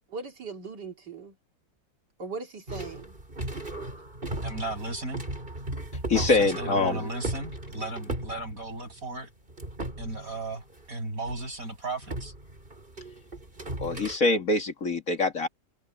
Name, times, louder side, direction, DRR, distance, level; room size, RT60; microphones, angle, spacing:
voice 1, 0.1-1.4 2.2-3.2, right 4 dB, 70° right, 2.9 m, -39 dB
sound 1, 2.7-9.2 9.5-10.9 11.3-11.5 12.0-14.2, right 1 dB, 30° right, 4.3 m, -36 dB
voice 2, 4.4-5.2 6.1-9.3 10.0-12.3, right 2 dB, 50° right, 8.0 m, -35 dB
voice 3, 6.1-7.0 13.8-15.5, left 3 dB, 50° left, 2.2 m, -24 dB
omnidirectional pair, 1.9 m